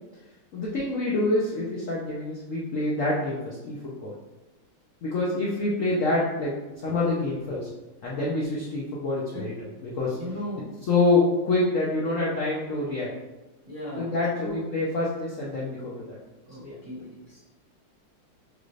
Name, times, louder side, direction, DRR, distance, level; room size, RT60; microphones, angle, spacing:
voice 1, 0.5-4.1 5.0-6.5 6.8-7.7 8.0-9.5 9.8-10.2 10.9-13.1 14.0-16.2 16.6-16.8, left 2 dB, 85° left, -6 dB, 0.7 m, -26 dB
voice 2, 10.1-10.7 13.7-14.6 16.5-17.4, equal, 35° right, -7 dB, 0.9 m, -37 dB
6.5 x 2.5 x 3.1 m, 1.1 s
omnidirectional pair, 2.3 m